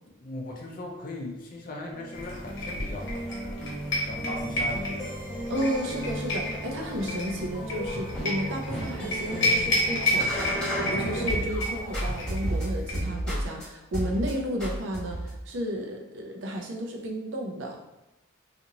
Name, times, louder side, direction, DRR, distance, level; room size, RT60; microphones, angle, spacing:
voice 1, 0.2-3.6 4.0-5.2, left 2 dB, 40° left, 0 dB, 0.5 m, -38 dB
sound 1, 1.9-11.6 11.9-13.6 13.9-14.3 14.6-15.4, right 1 dB, 5° left, 1.2 m, -34 dB
sound 2, 2.1-12.9, left 1 dB, 60° left, 0.9 m, -31 dB
voice 2, 5.5-17.8, equal, 65° right, 2 dB, 0.5 m, -33 dB
sound 3, 7.4-12.3, left 1 dB, 90° left, 0.8 m, -41 dB
2.7 x 2.5 x 2.9 m, 0.95 s
head